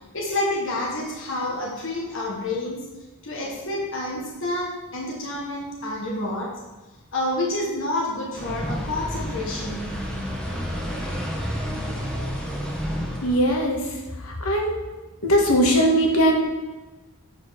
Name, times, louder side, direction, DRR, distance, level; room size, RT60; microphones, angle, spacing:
voice 1, 0.1-2.8 3.2-6.6 7.1-10.0, left 1 dB, 60° left, -2 dB, 1.4 m, -28 dB
sound 1, 8.3-13.4, equal, 5° left, 1.3 m, -30 dB
voice 2, 13.2-13.9 14.2-14.7 15.2-16.4, equal, 80° left, 0 dB, 1.6 m, -20 dB
8.1 x 5.3 x 5.6 m, 1.2 s
head